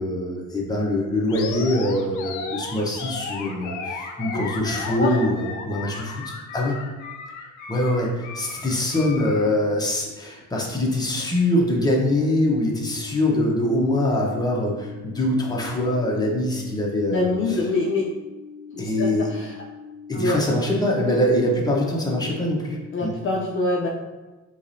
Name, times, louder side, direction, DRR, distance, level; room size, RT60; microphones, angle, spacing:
voice 1, 0.0-6.8 7.7-17.6 18.8-19.3 20.1-23.1, left 1 dB, 15° left, -3 dB, 1.0 m, -23 dB
Animal, 1.3-9.5, left 4 dB, 85° left, 0.6 m, -35 dB
sound 1, 12.8-22.8, left 6 dB, 70° right, 1.5 m, -42 dB
voice 2, 17.1-18.1 18.7-19.5 20.1-20.4 21.0-21.3 22.9-23.9, left 2 dB, 45° left, -2 dB, 0.6 m, -25 dB
4.6 x 3.2 x 2.7 m, 1.2 s
cardioid pair, 90°, 30 cm